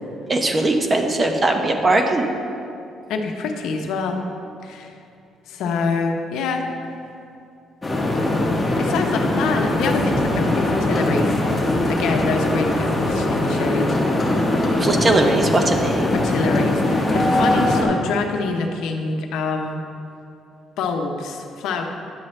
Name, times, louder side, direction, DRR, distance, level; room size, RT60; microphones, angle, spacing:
voice 1, 0.3-2.2 14.8-16.1, right 2 dB, 25° right, 4 dB, 0.7 m, -19 dB
voice 2, 3.1-4.2 4.6-4.9 5.5-6.7 8.8-11.4 11.9-14.0 16.1-19.8 20.8-21.8, left 4 dB, 85° left, 3 dB, 0.8 m, -25 dB
sound 1, 7.8-17.8, left 1 dB, 15° left, 1.2 m, -21 dB
10.5 x 7.4 x 3.2 m, 2.6 s
cardioid pair, 135°, 0 cm